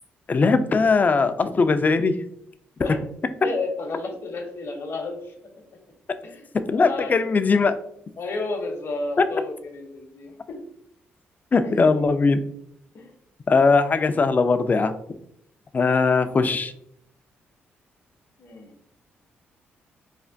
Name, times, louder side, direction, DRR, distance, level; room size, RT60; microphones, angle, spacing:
voice 1, 0.3-2.2 6.7-7.7 11.5-12.4 13.5-14.9 15.7-16.7, left 4 dB, 35° left, 10 dB, 0.3 m, -20 dB
voice 2, 3.4-5.3 6.2-7.1 8.2-10.7 11.6-11.9 12.9-13.1 18.4-18.8, left 3 dB, 55° left, 3 dB, 0.7 m, -32 dB
3.2 x 2.1 x 2.5 m, 0.70 s
supercardioid pair, 55°, 5 cm